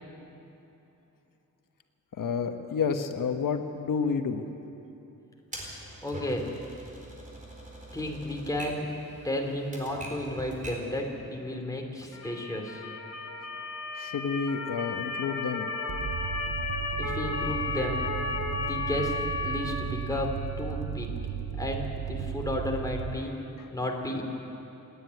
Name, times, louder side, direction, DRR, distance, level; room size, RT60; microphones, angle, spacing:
voice 1, 2.2-4.4 13.9-15.7 23.6-23.7, left 5 dB, 85° left, 6 dB, 1.2 m, -30 dB
Typewriter, 5.5-11.0, right 1 dB, 25° right, 4.2 m, -43 dB
voice 2, 6.0-6.6 7.9-8.9 9.2-12.9 17.0-18.1 18.5-19.2 19.4-21.1 21.6-23.4 23.7-24.2, left 1 dB, 10° left, 1 dB, 2.9 m, -33 dB
Motor vehicle (road) / Siren, 12.1-19.6, left 3 dB, 55° left, 2.5 m, -34 dB
sound 1, 15.9-23.2, right 8 dB, 55° right, 0.7 m, -35 dB
28.0 x 10.0 x 9.6 m, 2.9 s
wide cardioid pair, 135°, 32 cm